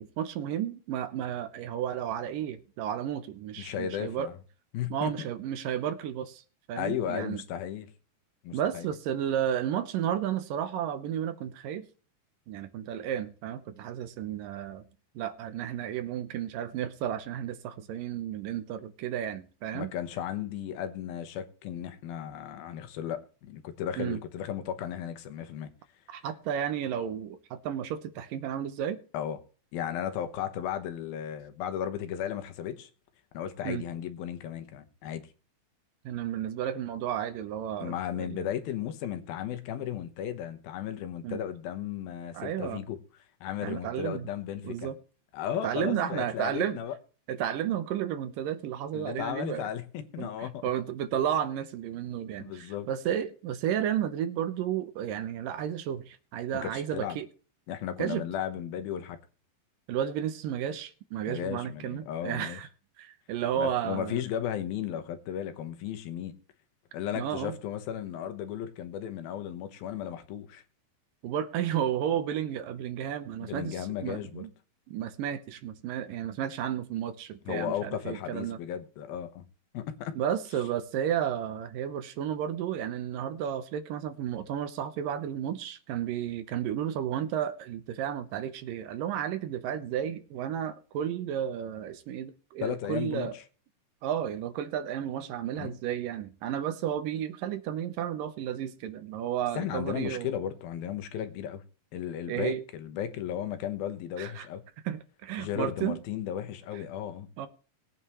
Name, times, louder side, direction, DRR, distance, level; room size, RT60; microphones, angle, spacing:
voice 1, 0.0-4.3 4.9-6.4 6.7-7.4 8.5-11.9 12.5-14.8 15.2-19.9 24.0-24.2 26.1-29.0 33.6-33.8 36.1-38.5 41.2-41.4 42.3-42.8 43.6-44.3 44.6-45.0 45.6-46.8 47.3-49.7 50.2-57.3 58.0-58.2 59.9-62.7 63.0-64.2 67.2-67.6 71.2-74.5 74.9-78.6 80.1-93.4 94.0-100.3 102.3-102.6 104.2-104.5 104.9-106.0 107.4-107.5, right 10 dB, 75° right, 2.5 m, -32 dB
voice 2, 3.6-4.3 4.7-5.3 6.8-7.9 8.4-8.9 19.7-25.7 29.1-29.4 29.7-32.9 33.3-35.3 37.8-43.0 43.4-44.9 45.3-47.0 48.9-50.7 52.4-52.9 56.6-57.2 57.7-59.2 61.3-62.6 63.5-66.4 66.9-70.6 73.4-74.4 77.5-79.5 79.7-80.2 92.6-93.4 95.6-95.7 99.6-101.6 101.9-104.6 105.4-107.3, left 10 dB, 80° left, 3.0 m, -35 dB
20.5 x 9.1 x 3.1 m
omnidirectional pair, 4.2 m